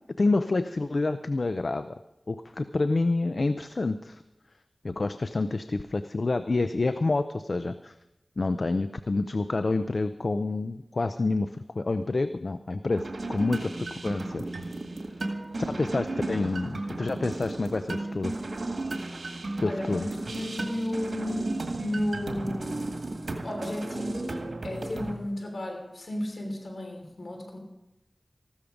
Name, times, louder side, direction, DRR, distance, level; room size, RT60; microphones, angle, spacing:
voice 1, 0.2-2.0 2.3-4.2 4.8-7.9 8.4-14.4 15.6-18.3 19.6-20.1, left 3 dB, 70° left, 11 dB, 0.5 m, -28 dB
sound 1, 12.9-25.2, right 2 dB, 85° right, 1.9 m, -34 dB
voice 2, 19.6-23.0 23.4-24.4 24.6-27.6, left 1 dB, 85° left, 3 dB, 3.3 m, -34 dB
14.5 x 13.0 x 5.2 m, 0.90 s
wide cardioid pair, 50°, 0 cm